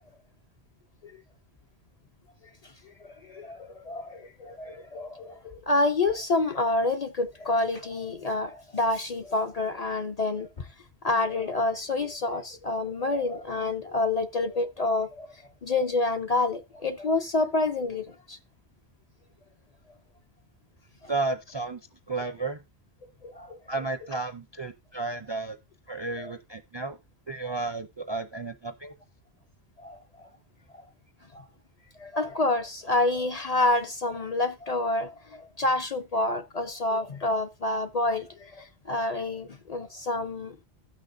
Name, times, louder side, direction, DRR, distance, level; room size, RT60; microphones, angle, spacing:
voice 1, 3.0-5.4 5.7-10.7 11.0-15.3 15.6-18.4 23.2-23.6 26.2-26.3 29.8-30.0 31.3-31.4 32.0-40.6, left 2 dB, 45° left, 0.5 m, -28 dB
voice 2, 21.1-21.8 22.1-22.6 23.7-25.6 25.9-27.0 27.3-28.9, right 3 dB, 40° right, 0.4 m, -32 dB
16.5 x 6.0 x 2.6 m
omnidirectional pair, 1.1 m